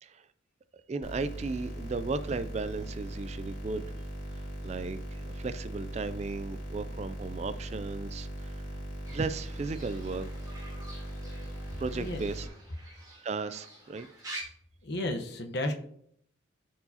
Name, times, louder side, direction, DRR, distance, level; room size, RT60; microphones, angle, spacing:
voice 1, 0.9-3.9 4.6-8.5 9.1-10.3 11.8-12.5 13.2-14.1, right 4 dB, 35° right, 13 dB, 0.3 m, -35 dB
sound 1, 1.0-12.5, right 1 dB, 75° left, 2.3 m, -39 dB
Fowl / Bird, 9.0-14.4, right 1 dB, 20° right, 2.3 m, -47 dB
voice 2, 11.9-12.2 14.8-15.7, left 1 dB, 55° left, 4 dB, 1.0 m, -32 dB
13.5 x 4.7 x 2.8 m, 0.67 s
head